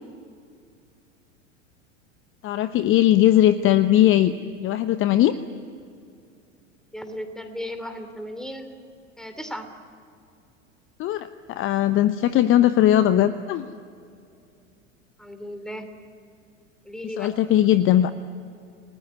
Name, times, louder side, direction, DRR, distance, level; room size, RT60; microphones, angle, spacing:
voice 1, 2.4-4.3 4.6-5.4 11.0-13.7 17.2-18.1, left 12 dB, 30° left, 12 dB, 0.9 m, -19 dB
voice 2, 6.9-8.7 9.2-9.7 15.2-15.9 16.8-17.4, equal, ahead, 8 dB, 2.9 m, -35 dB
29.0 x 19.5 x 9.6 m, 2.5 s
figure-of-eight pair, 85°, 38 cm